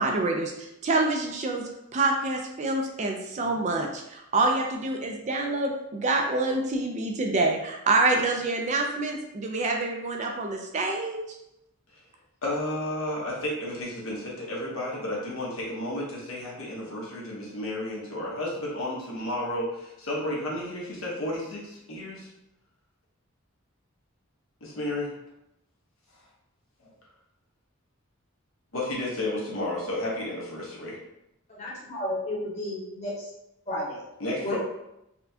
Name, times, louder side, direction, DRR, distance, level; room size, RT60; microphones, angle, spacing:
voice 1, 0.0-11.2, right 2 dB, 35° right, 2 dB, 0.4 m, -27 dB
voice 2, 12.4-22.3 24.6-25.1 26.8-26.9 28.7-31.0 34.2-34.6, left 1 dB, 70° left, -4 dB, 1.0 m, -32 dB
voice 3, 31.5-33.3 33.7-34.0 34.4-34.6, left 1 dB, 35° left, -7 dB, 1.3 m, -32 dB
4.2 x 2.2 x 2.7 m, 0.85 s
head